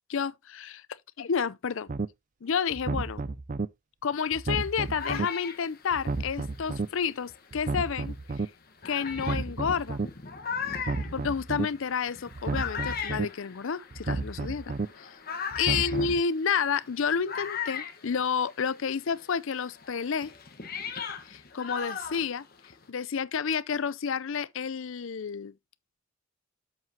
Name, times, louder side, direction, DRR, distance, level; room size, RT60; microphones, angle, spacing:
voice 1, 0.1-0.8 1.2-1.9 2.4-3.2 4.0-8.5 8.8-10.0 11.1-15.1 15.6-20.3 21.3-22.4 22.9-25.5, left 6 dB, 60° left, 0.5 m, -30 dB
sound 1, 1.9-2.1 2.7-3.7 4.3-5.3 5.9-6.9 7.5-8.5 9.1-10.1 10.7-11.7 12.3-13.3 13.9-14.9 15.5-16.2, right 3 dB, 35° right, 0.4 m, -32 dB
sound 2, 4.5-7.6 8.2-8.3 8.8-18.8 19.1-22.9, left 6 dB, 40° left, 1.2 m, -39 dB
7.6 x 7.5 x 2.8 m
head